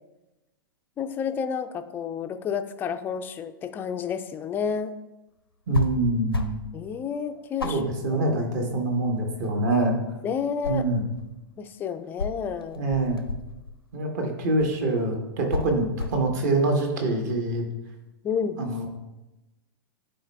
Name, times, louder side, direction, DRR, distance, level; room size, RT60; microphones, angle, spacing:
voice 1, 1.0-4.9 6.7-7.8 8.1-8.3 10.2-10.9 11.6-12.9 18.2-18.6, left 7 dB, 15° left, 10 dB, 0.3 m, -30 dB
sound 1, 5.7-5.9 6.3-6.7 7.0-7.1 7.6-8.9 9.2-10.1 10.4-11.4 12.2-13.8 14.6-14.8 15.4-16.3, left 4 dB, 85° left, 0.6 m, -31 dB
voice 2, 5.7-6.6 7.6-10.0 10.7-11.0 12.8-13.3 13.9-17.7 18.6-18.9, right 2 dB, 50° right, 3 dB, 1.2 m, -25 dB
10.5 x 4.4 x 2.3 m, 1.0 s
figure-of-eight pair, 100°, 12 cm